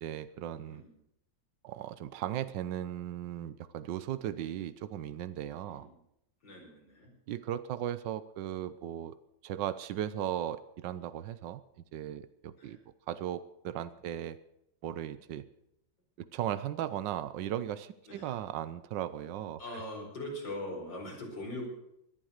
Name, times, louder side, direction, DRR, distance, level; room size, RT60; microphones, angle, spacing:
voice 1, 0.0-0.8 1.6-5.9 7.3-9.2 9.4-11.6 11.9-12.8 13.1-14.4 14.8-15.5 16.2-19.6, right 11 dB, 80° right, 14 dB, 1.4 m, -37 dB
voice 2, 5.6-6.0 6.4-7.1 12.6-12.8 18.1-18.3 19.6-21.7, left 1 dB, 80° left, -1 dB, 5.5 m, -41 dB
19.5 x 11.0 x 6.5 m, 0.77 s
omnidirectional pair, 2.0 m